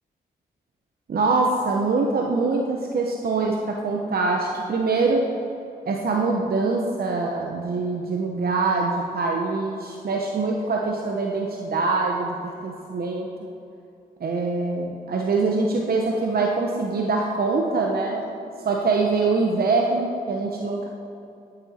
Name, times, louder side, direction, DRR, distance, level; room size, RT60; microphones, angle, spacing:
voice 1, 1.1-5.2 5.9-13.3 14.2-20.9, right 3 dB, 60° right, 0 dB, 1.0 m, -24 dB
10.0 x 9.2 x 4.3 m, 2.7 s
cardioid pair, 55°, 17 cm